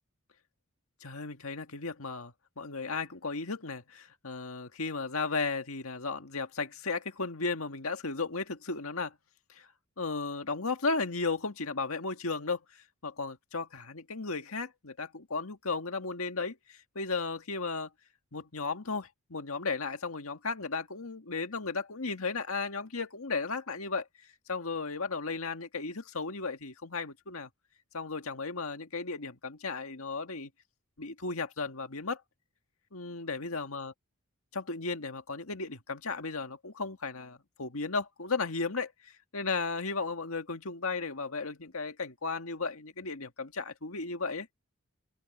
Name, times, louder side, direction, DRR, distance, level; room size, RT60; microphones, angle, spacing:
voice 1, 1.0-9.1 9.5-9.7 10.0-17.9 18.3-24.1 24.5-27.5 27.9-30.5 31.0-32.2 32.9-33.9 34.6-44.5, left 4 dB, 70° left, 1.9 m, -35 dB
open air
head